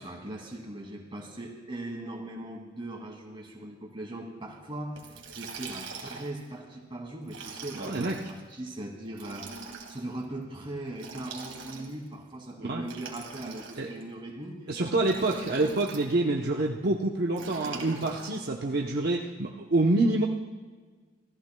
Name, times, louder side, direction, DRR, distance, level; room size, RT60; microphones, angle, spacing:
voice 1, 0.0-14.7 15.3-15.6, right 1 dB, 25° right, 0 dB, 2.4 m, -40 dB
Liquid, 5.0-6.4 7.2-8.3 9.1-10.0 10.9-12.1 12.8-14.0 15.0-16.1 17.4-18.4, right 4 dB, 75° right, 2.1 m, -42 dB
voice 2, 7.8-8.2 12.6-12.9 13.8-13.9 14.7-20.3, right 2 dB, 55° right, -1 dB, 0.8 m, -27 dB
26.5 x 14.5 x 2.3 m, 1.4 s
head